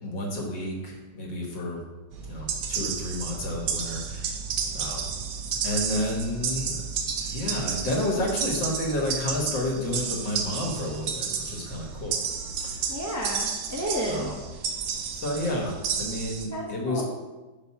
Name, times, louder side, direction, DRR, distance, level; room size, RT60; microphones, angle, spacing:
voice 1, 0.0-1.8 2.3-4.3 4.7-5.1 5.6-6.8 7.3-12.3 12.6-12.8 14.1-14.4 15.2-17.0, left 1 dB, 80° left, -1 dB, 2.0 m, -30 dB
sound 1, 2.1-16.5, right 6 dB, 80° right, 1.3 m, -32 dB
voice 2, 12.9-14.3 16.5-17.0, equal, 20° right, -3 dB, 0.4 m, -31 dB
5.4 x 4.2 x 5.8 m, 1.2 s
omnidirectional pair, 1.9 m